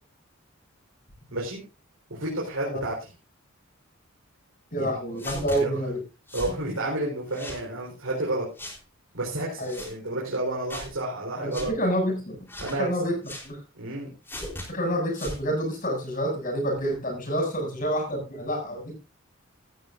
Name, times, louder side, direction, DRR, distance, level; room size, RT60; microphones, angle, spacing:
voice 1, 1.3-1.6 2.1-2.9 4.8-5.8 6.3-8.5 9.1-11.7 12.6-12.9 13.7-14.1, right 1 dB, 85° right, -2 dB, 4.4 m, -31 dB
voice 2, 4.7-6.0 9.6-9.8 11.4-12.5 12.8-13.2 13.4-13.6 14.7-18.9, equal, 40° left, 2 dB, 7.2 m, -28 dB
sound 1, 5.2-5.6 6.3-6.6 7.3-7.6 8.6-8.8 9.6-9.9 10.7-10.9 11.5-11.7 12.5-12.8 13.2-13.5 14.3-14.7 15.1-15.4, left 1 dB, 10° left, 3.9 m, -38 dB
16.0 x 13.0 x 2.6 m, 0.29 s
head